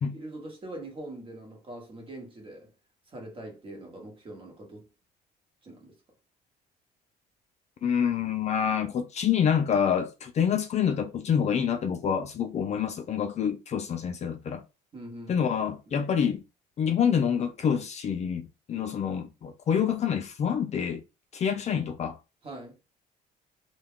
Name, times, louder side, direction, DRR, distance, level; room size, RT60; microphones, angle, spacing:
voice 1, 0.1-2.7 3.1-4.9 5.6-5.9 14.9-16.0 22.4-22.8, right 1 dB, 30° right, 1.0 m, -43 dB
voice 2, 7.8-14.6 15.3-16.4 16.8-21.0 21.3-22.2, left 8 dB, 40° left, 0.4 m, -27 dB
2.2 x 2.2 x 3.5 m
cardioid pair, 110°, 17 cm